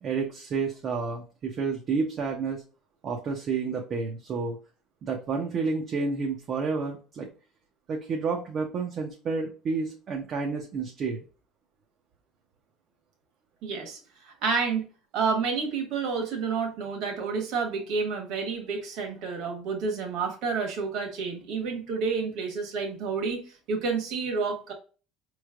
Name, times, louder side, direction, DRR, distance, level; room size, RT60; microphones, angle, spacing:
voice 1, 0.0-2.6 3.0-4.6 5.0-7.3 7.9-11.2, right 4 dB, 35° right, 1 dB, 0.6 m, -30 dB
voice 2, 13.6-14.9 15.1-24.7, right 5 dB, 55° right, 4 dB, 1.4 m, -30 dB
5.3 x 3.1 x 2.3 m, 0.36 s
cardioid pair, 170°, 0 cm